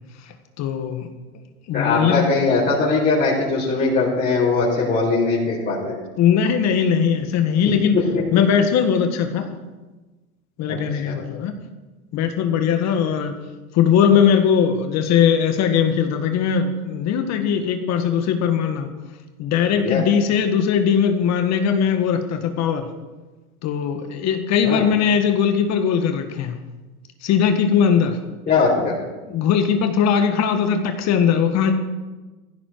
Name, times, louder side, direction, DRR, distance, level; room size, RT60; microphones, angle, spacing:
voice 1, 0.2-1.1 1.7-2.3 6.2-8.0 8.3-9.5 10.6-11.5 12.1-13.3 13.7-18.9 19.4-22.9 23.6-26.6 27.2-28.2 28.8-28.9 29.3-31.7, left 7 dB, 35° left, 7 dB, 1.6 m, -20 dB
voice 2, 1.7-5.9 7.9-8.0 11.0-11.1 19.8-20.0 24.6-24.8 28.5-28.9, left 4 dB, 20° left, -10 dB, 4.9 m, -20 dB
17.0 x 15.5 x 4.7 m, 1.2 s
supercardioid pair, 130°, 45 cm